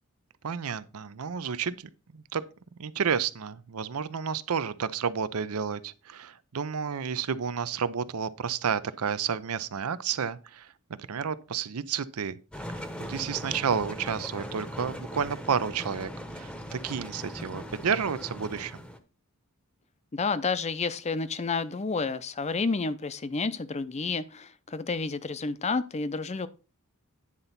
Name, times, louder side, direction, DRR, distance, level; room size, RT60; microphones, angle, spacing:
voice 1, 0.4-2.4 2.8-12.4 12.7-12.8 13.1-18.8, right 6 dB, 80° right, 0.6 m, -31 dB
sound 1, 12.5-19.0, equal, 5° left, 0.8 m, -39 dB
voice 2, 20.1-26.5, left 4 dB, 30° left, 0.5 m, -30 dB
9.8 x 4.0 x 5.7 m
head